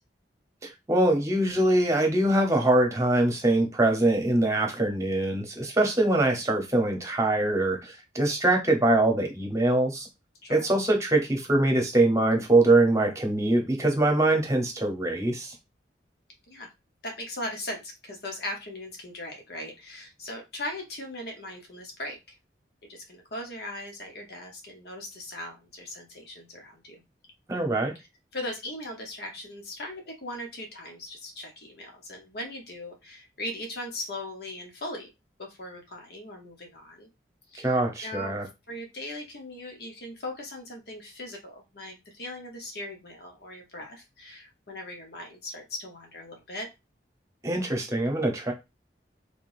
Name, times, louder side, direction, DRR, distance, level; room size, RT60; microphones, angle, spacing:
voice 1, 0.6-10.1 10.5-15.5 27.5-27.9 37.6-38.4 47.4-48.5, right 2 dB, 20° right, 2 dB, 1.0 m, -23 dB
voice 2, 17.0-22.3 22.9-27.0 27.9-28.1 28.3-35.1 35.4-37.1 37.5-38.3 38.7-46.7, left 1 dB, 65° left, 2 dB, 1.1 m, -39 dB
3.7 x 3.4 x 2.6 m, 0.23 s
head